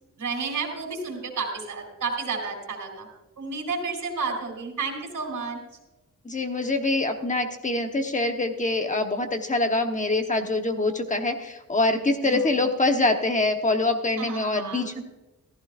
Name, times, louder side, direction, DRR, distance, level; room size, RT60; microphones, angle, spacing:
voice 1, 0.2-3.1 3.4-5.6 12.3-12.4 14.2-15.0, right 4 dB, 60° right, 2 dB, 3.8 m, -31 dB
voice 2, 6.2-15.0, left 2 dB, 20° left, 5 dB, 1.1 m, -25 dB
15.0 x 14.5 x 2.5 m, 1.0 s
wide cardioid pair, 170°, 34 cm